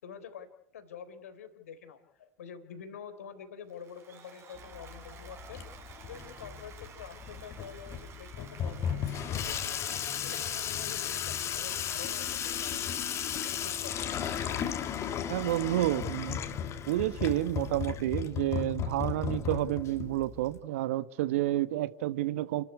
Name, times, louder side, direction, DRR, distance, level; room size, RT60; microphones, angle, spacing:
voice 1, 0.0-5.6 6.0-9.9 10.2-13.0 13.6-14.3, left 7 dB, 75° left, 3.7 m, -47 dB
Applause, 3.7-16.9, right 6 dB, 35° right, 5.3 m, -54 dB
Water tap faucet / Sink (filling or washing), 4.6-20.6, left 8 dB, 40° left, 2.6 m, -35 dB
voice 2, 15.3-16.4 16.9-22.6, right 15 dB, 65° right, 1.2 m, -30 dB
29.5 x 13.0 x 9.7 m
hypercardioid pair, 85°, 8 cm